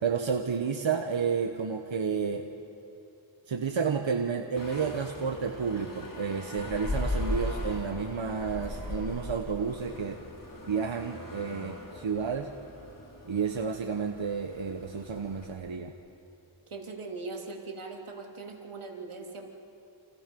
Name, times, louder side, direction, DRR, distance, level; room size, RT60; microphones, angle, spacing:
voice 1, 0.0-2.5 3.5-10.2 10.7-12.5 13.2-15.9, right 6 dB, 70° right, 4 dB, 1.3 m, -31 dB
sound 1, 4.6-15.5, left 1 dB, 40° left, 4.6 m, -38 dB
voice 2, 16.7-19.5, right 3 dB, 90° right, 1 dB, 2.8 m, -40 dB
29.0 x 28.0 x 5.4 m, 2.8 s
cardioid pair, 45°, 48 cm